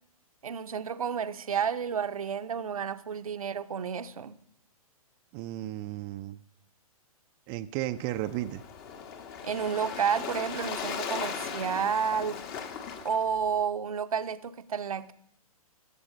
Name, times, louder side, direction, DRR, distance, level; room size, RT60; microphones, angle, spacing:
voice 1, 0.4-4.4 9.4-12.4 13.0-15.1, right 7 dB, 70° right, 0.8 m, -31 dB
voice 2, 5.3-6.4 7.5-8.6, right 14 dB, 25° right, 0.5 m, -34 dB
Waves surf, 7.9-13.6, left 7 dB, 35° left, 1.4 m, -38 dB
19.0 x 7.0 x 5.2 m
figure-of-eight pair, 120°, 19 cm